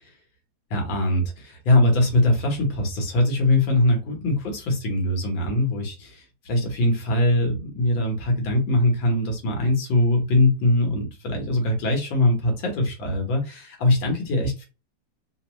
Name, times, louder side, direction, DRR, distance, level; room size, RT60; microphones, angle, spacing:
voice 1, 0.7-14.6, left 1 dB, 80° left, 1 dB, 2.0 m, -22 dB
4.1 x 2.3 x 3.0 m, 0.31 s
omnidirectional pair, 2.1 m